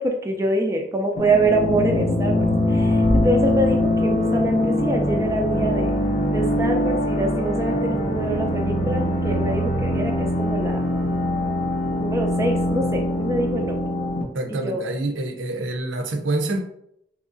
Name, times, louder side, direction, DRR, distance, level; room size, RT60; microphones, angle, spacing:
voice 1, 0.0-5.9 6.3-10.8 12.0-13.8 14.5-14.8, right 2 dB, 15° right, 0.3 m, -25 dB
sound 1, 1.2-14.2, left 1 dB, 40° left, 0.5 m, -22 dB
Bass drum, 3.0-4.7, equal, 75° left, 0.8 m, -28 dB
voice 2, 14.3-16.6, right 2 dB, 75° right, 0.5 m, -26 dB
3.6 x 3.0 x 2.5 m
head